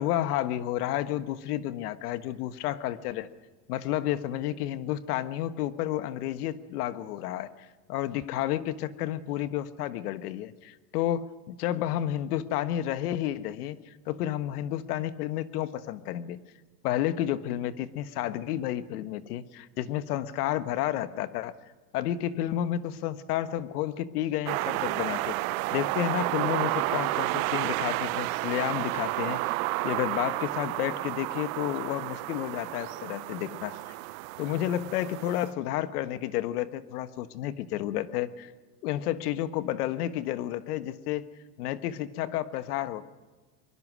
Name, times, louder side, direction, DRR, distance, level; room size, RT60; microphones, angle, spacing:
voice 1, 0.0-3.3 3.7-7.5 7.9-16.4 16.8-21.5 21.9-25.4 25.7-29.4 29.8-33.8 34.4-38.5 38.8-41.3 41.6-43.0, left 12 dB, 75° left, 13 dB, 1.4 m, -31 dB
sound 1, 24.5-35.5, right 21 dB, 65° right, 0.7 m, -31 dB
23.5 x 21.5 x 6.3 m, 1.3 s
supercardioid pair, 145°, 46 cm